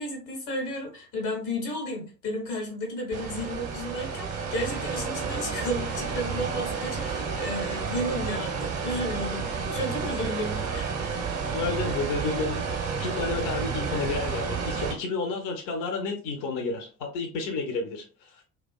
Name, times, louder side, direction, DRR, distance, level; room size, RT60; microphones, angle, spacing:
voice 1, 0.0-11.3, equal, 75° left, 0 dB, 1.2 m, -33 dB
sound 1, 3.1-14.9, right 5 dB, 35° right, 0.7 m, -31 dB
voice 2, 11.4-12.6 13.0-18.4, left 3 dB, 45° left, 3 dB, 0.6 m, -31 dB
2.4 x 2.3 x 2.3 m, 0.36 s
figure-of-eight pair, 60°, 45 cm